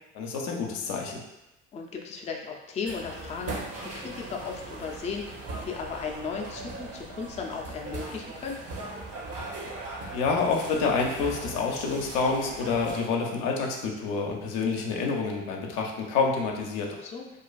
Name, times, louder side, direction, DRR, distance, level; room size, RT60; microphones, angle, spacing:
voice 1, 0.1-1.2 9.9-16.9, left 4 dB, 75° left, 0 dB, 0.5 m, -28 dB
voice 2, 1.7-3.5 3.8-8.6 16.9-17.3, left 5 dB, 20° left, 1 dB, 0.3 m, -36 dB
sound 1, 2.9-13.0, right 2 dB, 50° right, 0.7 m, -39 dB
2.4 x 2.4 x 2.3 m, 0.93 s
hypercardioid pair, 60°, 32 cm